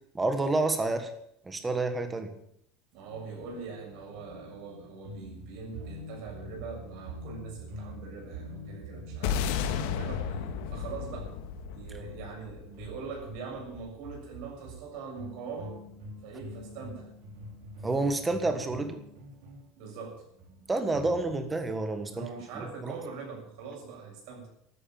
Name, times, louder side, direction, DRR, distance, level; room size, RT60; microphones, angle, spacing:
voice 1, 0.1-1.1 1.4-2.3 17.8-19.0 20.7-22.3 22.8-22.9, right 2 dB, 10° right, 8 dB, 1.6 m, -29 dB
voice 2, 2.9-11.3 11.7-15.7 16.2-17.1 19.7-20.2 22.1-24.5, right 5 dB, 55° right, 0 dB, 7.1 m, -42 dB
sound 1, 3.1-21.5, equal, 80° right, 4.7 m, -45 dB
sound 2, 9.2-13.7, left 8 dB, 70° left, 1.8 m, -33 dB
13.0 x 9.7 x 9.1 m, 0.72 s
cardioid pair, 175°, 0 cm